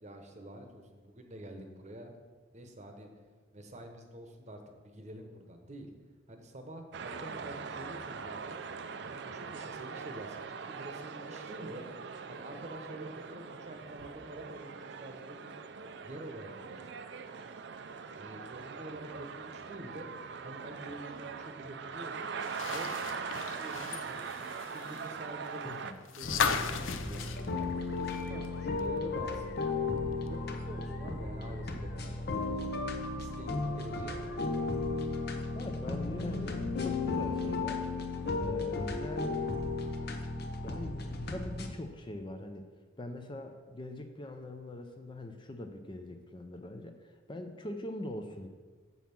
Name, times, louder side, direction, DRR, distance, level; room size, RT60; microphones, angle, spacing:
voice 1, 0.0-2.1 2.5-3.1 3.5-5.9 6.3-8.6 9.0-11.8 12.3-15.5 16.0-16.9 18.2-20.1 20.4-22.2 22.7-24.3 24.7-25.8 26.1-27.9 28.2-29.5 30.3-32.9 33.2-34.4, right 1 dB, 35° right, 5 dB, 0.9 m, -47 dB
sound 1, 6.9-25.9, right 5 dB, 60° right, 0.5 m, -42 dB
sound 2, 22.4-28.5 28.8-28.9 30.3-30.4, left 6 dB, 85° left, 0.5 m, -36 dB
voice 2, 25.6-26.0 35.5-37.9 38.4-39.4 40.6-42.6 43.0-48.5, left 1 dB, 25° left, 6 dB, 0.5 m, -42 dB
sound 3, 26.2-41.7, left 3 dB, 55° left, 0.8 m, -35 dB
7.4 x 5.4 x 6.0 m, 1.4 s
head